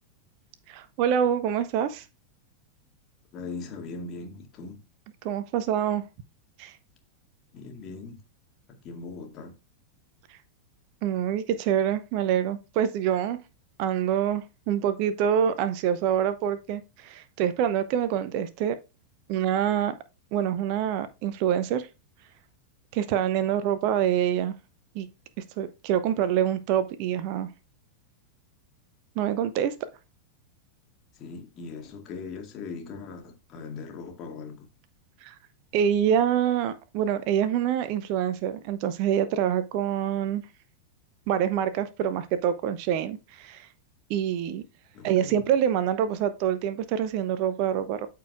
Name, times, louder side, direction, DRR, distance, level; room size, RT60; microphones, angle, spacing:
voice 1, 0.7-2.1 5.2-6.0 6.6-6.7 10.3-10.4 11.0-13.4 13.8-18.8 19.3-19.9 20.3-21.9 22.9-24.5 24.9-25.1 25.6-27.5 29.2-29.7 35.2-35.3 35.7-40.4 41.3-43.7 44.1-44.6 45.0-48.1, right 9 dB, 45° right, 0.7 m, -26 dB
voice 2, 3.3-4.8 7.5-8.2 8.7-9.5 31.1-34.7 44.9-45.5, left 4 dB, 35° left, 2.1 m, -40 dB
13.5 x 4.6 x 2.4 m
figure-of-eight pair, 90°, 0 cm